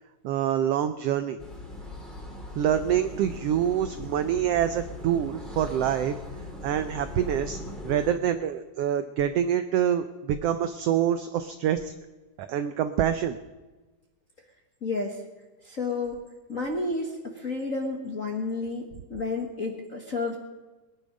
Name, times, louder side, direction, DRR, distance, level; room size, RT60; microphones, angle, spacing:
voice 1, 0.2-1.4 2.6-6.2 6.6-7.6 7.8-11.9 12.4-13.4, right 10 dB, 85° right, 10 dB, 1.3 m, -26 dB
sound 1, 1.4-8.1, left 2 dB, ahead, 2.3 m, -39 dB
voice 2, 14.8-15.2 15.6-16.2 16.5-20.4, left 3 dB, 40° left, 1 dB, 1.1 m, -31 dB
21.5 x 10.5 x 5.2 m, 1.2 s
omnidirectional pair, 3.5 m